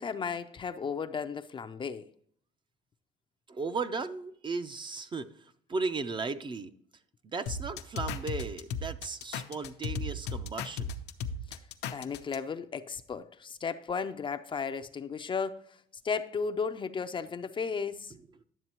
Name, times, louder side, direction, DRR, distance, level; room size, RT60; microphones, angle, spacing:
voice 1, 0.0-2.1 11.5-11.6 11.9-15.8 16.0-18.1, left 5 dB, 30° left, 0.5 m, -34 dB
voice 2, 3.5-6.7 7.2-10.9, right 4 dB, 30° right, 0.5 m, -36 dB
sound 1, 7.5-12.4, left 4 dB, 85° left, 0.7 m, -35 dB
11.0 x 7.2 x 2.9 m
cardioid pair, 110°, 17 cm